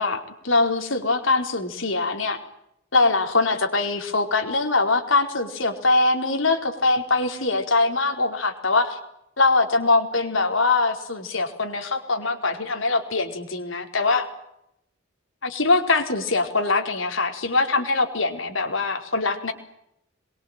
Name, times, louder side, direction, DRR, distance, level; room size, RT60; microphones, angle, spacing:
voice 1, 0.0-2.4 2.9-9.0 9.4-14.3 15.4-19.5, left 3 dB, 75° left, 5 dB, 4.7 m, -22 dB
27.0 x 23.0 x 9.2 m, 0.79 s
head